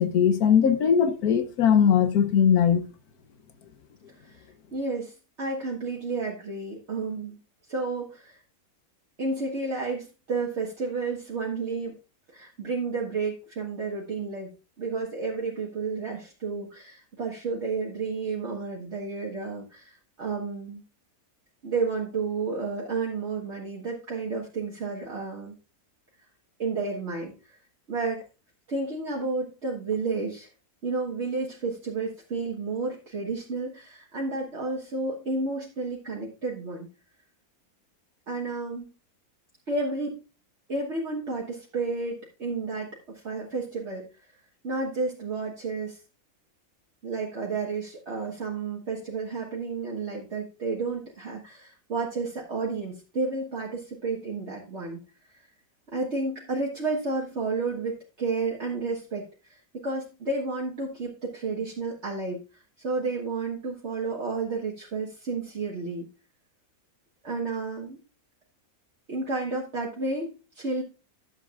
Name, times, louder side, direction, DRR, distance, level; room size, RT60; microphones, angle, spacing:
voice 1, 0.0-2.8, left 8 dB, 85° left, 1.4 m, -20 dB
voice 2, 4.2-7.4 7.7-8.4 9.2-11.9 12.3-14.5 14.8-20.8 21.6-25.5 26.6-27.6 27.9-28.2 28.7-30.5 30.8-36.9 38.3-38.9 39.7-40.2 40.7-44.0 44.6-46.0 47.0-55.0 55.3-55.4 55.9-66.1 67.2-68.0 69.1-70.8, right 3 dB, 50° right, 1.7 m, -31 dB
12.5 x 7.5 x 2.4 m
omnidirectional pair, 1.6 m